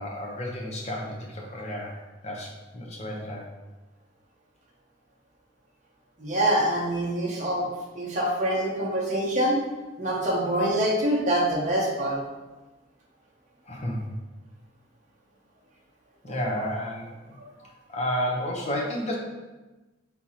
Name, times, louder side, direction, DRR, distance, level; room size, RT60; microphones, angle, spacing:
voice 1, 0.0-2.0 2.2-3.5 13.6-14.0 16.2-17.1 17.9-19.2, equal, 35° left, -2 dB, 0.8 m, -31 dB
voice 2, 6.2-7.7 7.9-9.6 10.0-12.2, right 1 dB, 40° right, -3 dB, 0.7 m, -25 dB
4.5 x 3.6 x 2.9 m, 1.1 s
head